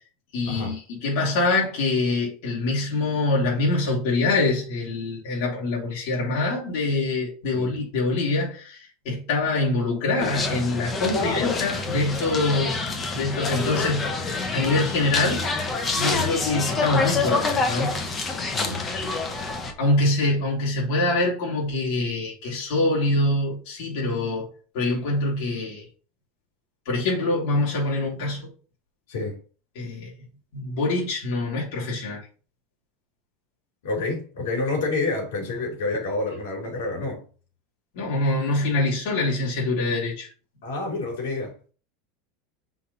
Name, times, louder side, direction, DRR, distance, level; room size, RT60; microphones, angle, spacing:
voice 1, 0.3-15.5 15.9-18.0 19.8-24.5 24.7-25.8 26.9-28.5 29.8-30.1 30.5-32.3 37.9-40.3, left 2 dB, 55° left, 3.5 m, -25 dB
sound 1, 10.2-19.7, left 3 dB, 20° left, 1.1 m, -27 dB
voice 2, 11.1-11.6 12.4-12.7 16.1-16.3 18.5-18.8 29.1-29.4 33.8-37.2 40.6-41.5, left 3 dB, 85° left, 3.9 m, -28 dB
5.8 x 3.6 x 5.6 m
supercardioid pair, 165°, 0 cm